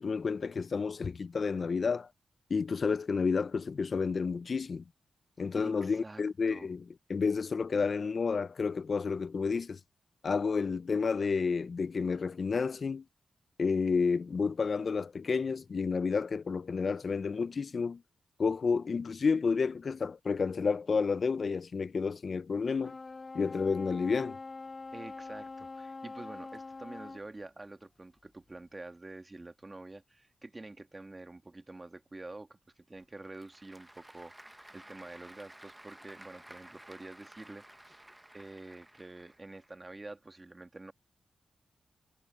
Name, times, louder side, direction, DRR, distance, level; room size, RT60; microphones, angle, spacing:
voice 1, 0.0-2.1 2.5-4.8 5.4-6.8 7.1-9.8 10.2-13.0 13.6-18.0 18.4-23.0 23.3-24.4, left 5 dB, 55° left, 0.5 m, -30 dB
voice 2, 5.5-6.2 6.5-6.7 24.9-38.0 38.3-40.9, right 2 dB, 30° right, 2.2 m, -47 dB
sound 1, 22.8-27.3, left 3 dB, 40° left, 1.0 m, -44 dB
Applause / Crowd, 33.0-39.7, right 1 dB, 10° right, 1.1 m, -54 dB
cardioid pair, 55°, 0 cm